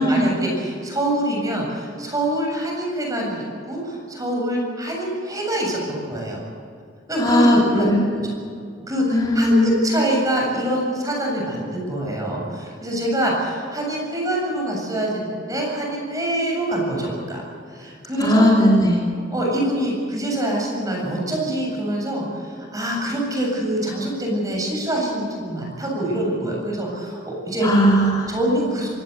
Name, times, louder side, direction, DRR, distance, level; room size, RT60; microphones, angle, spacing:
voice 1, 0.0-6.4 7.1-7.9 8.1-8.3 8.9-17.4 17.7-18.5 19.3-27.7 28.3-28.9, right 1 dB, 20° right, -1 dB, 7.5 m, -25 dB
voice 2, 7.2-8.1 9.1-9.7 18.2-19.0 27.6-28.3, equal, 20° left, -4 dB, 3.3 m, -17 dB
25.0 x 18.5 x 8.3 m, 2.3 s
head